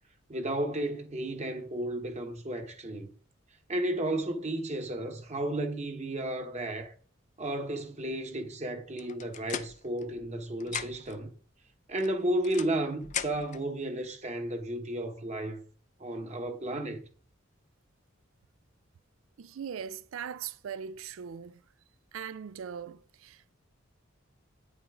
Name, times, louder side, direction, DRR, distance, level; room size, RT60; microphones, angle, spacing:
voice 1, 0.3-3.1 3.7-6.9 7.4-11.3 11.9-15.6 16.0-17.0, right 1 dB, 35° right, 1.2 m, -33 dB
sound 1, 9.0-10.3 10.6-11.2 12.0-13.6, left 8 dB, 35° left, 0.5 m, -39 dB
voice 2, 19.4-21.6 22.1-23.5, right 7 dB, 75° right, 0.4 m, -40 dB
9.2 x 7.3 x 3.7 m
head